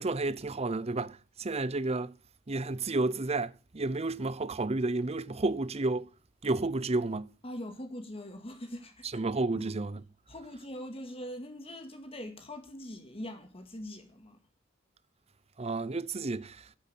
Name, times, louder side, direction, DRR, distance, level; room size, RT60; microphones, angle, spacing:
voice 1, 0.0-2.1 2.5-6.1 6.4-7.3 9.1-10.0 15.6-16.6, right 2 dB, 30° right, 0.7 m, -31 dB
voice 2, 7.4-9.3 9.6-9.7 10.3-14.4, left 1 dB, 30° left, 2.2 m, -42 dB
11.0 x 9.9 x 8.2 m
head